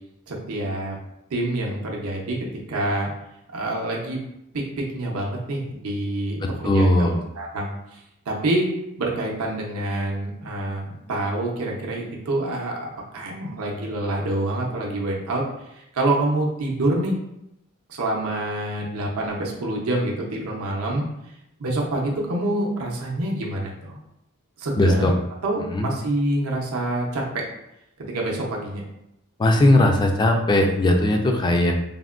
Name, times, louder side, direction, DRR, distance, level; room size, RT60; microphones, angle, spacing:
voice 1, 0.3-1.0 1.3-3.1 3.5-4.2 4.5-7.1 7.4-8.7 9.0-12.8 13.1-15.4 15.7-17.1 17.9-21.1 21.6-24.0 24.6-25.1 25.4-27.4 28.1-28.9, right 1 dB, 80° right, -1 dB, 0.6 m, -26 dB
voice 2, 6.4-7.2 24.8-25.1 25.6-25.9 29.4-31.7, left 1 dB, 20° left, 3 dB, 0.3 m, -19 dB
3.4 x 2.1 x 2.4 m, 0.84 s
head